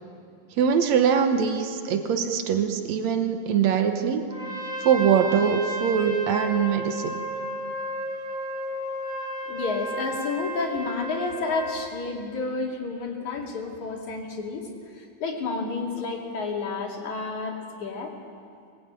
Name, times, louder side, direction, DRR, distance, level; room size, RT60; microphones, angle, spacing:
voice 1, 0.6-4.3 4.8-7.2, right 7 dB, 80° right, 6 dB, 1.5 m, -22 dB
Trumpet, 4.3-11.9, right 1 dB, ahead, 4.6 m, -33 dB
voice 2, 9.5-18.1, left 4 dB, 50° left, 0 dB, 3.7 m, -30 dB
25.0 x 21.0 x 8.9 m, 2.4 s
omnidirectional pair, 4.6 m